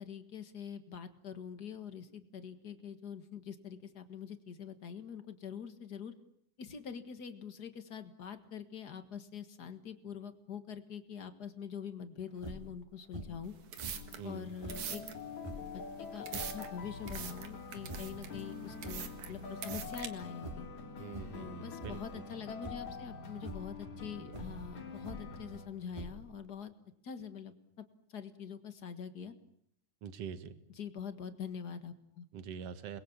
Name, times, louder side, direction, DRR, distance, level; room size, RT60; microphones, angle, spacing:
voice 1, 0.0-6.1 6.6-13.5 14.2-15.0 15.7-20.7 21.3-26.7 27.0-29.3 30.7-32.2, left 7 dB, 40° left, 9 dB, 1.7 m, -45 dB
sound 1, 12.4-12.8 13.1-13.5 13.8-14.9 15.4-15.7 16.3-17.4 17.7-18.3 18.6-19.4 19.7-20.1 20.4-20.8 21.1-21.5 21.8-22.2 22.6-23.0 23.4-23.7 24.3-25.4 25.9-26.5, right 1 dB, 10° right, 2.9 m, -46 dB
sound 2, 13.4-20.1, right 9 dB, 75° right, 3.2 m, -44 dB
sound 3, 14.0-25.7, left 4 dB, 65° left, 4.1 m, -46 dB
voice 2, 14.2-14.5 21.0-22.2 30.0-30.5 32.3-33.0, right 7 dB, 55° right, 11 dB, 2.4 m, -44 dB
28.5 x 21.5 x 7.4 m, 0.68 s
omnidirectional pair, 3.5 m